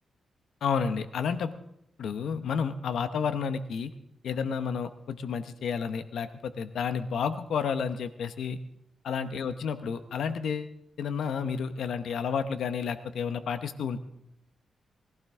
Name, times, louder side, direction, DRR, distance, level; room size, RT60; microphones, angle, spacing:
voice 1, 0.6-1.5 2.0-3.9 4.2-8.6 9.0-14.0, left 6 dB, 80° left, 10 dB, 0.9 m, -31 dB
20.5 x 15.5 x 3.6 m, 0.77 s
wide cardioid pair, 155°, 0 cm